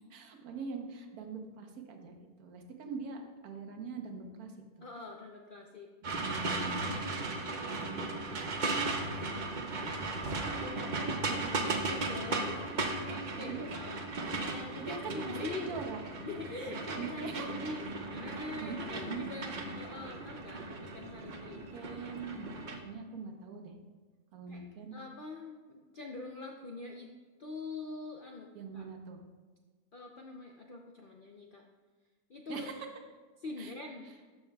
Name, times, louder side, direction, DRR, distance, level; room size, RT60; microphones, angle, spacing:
voice 1, 0.1-4.8 6.2-9.1 11.0-11.8 13.4-13.6 14.8-16.0 16.6-17.7 18.6-19.3 21.7-23.7 24.3-24.9 28.5-29.2 32.5-32.9 33.6-33.7 34.0-34.1, right 5 dB, 75° right, 4 dB, 1.3 m, -43 dB
voice 2, 4.8-5.9 10.5-12.6 13.0-15.8 16.2-21.6 24.5-24.6 24.9-27.1 27.4-28.5 28.7-28.9 29.9-31.6 32.3-32.7 33.4-34.0, left 3 dB, 60° left, 1 dB, 0.5 m, -44 dB
sound 1, 6.0-22.8, right 3 dB, 50° right, 0.6 m, -36 dB
13.0 x 5.6 x 2.3 m, 1.4 s
omnidirectional pair, 1.6 m